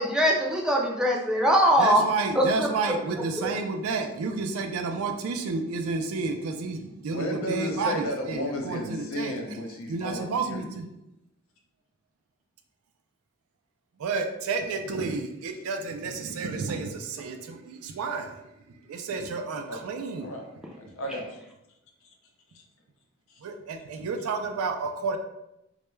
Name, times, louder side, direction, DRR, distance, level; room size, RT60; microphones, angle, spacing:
voice 1, 0.0-2.0 2.4-2.7 3.4-3.5, equal, 5° right, -2 dB, 0.3 m, -22 dB
voice 2, 1.8-9.4 9.9-10.8 14.0-20.3 23.4-25.2, right 4 dB, 80° right, 5 dB, 0.3 m, -31 dB
voice 3, 7.0-10.7 19.7-19.8 20.2-20.4 20.7-21.4 22.0-22.1 22.5-22.6 23.3-23.4, left 1 dB, 65° left, 1 dB, 0.5 m, -33 dB
2.2 x 2.2 x 3.0 m, 0.87 s
head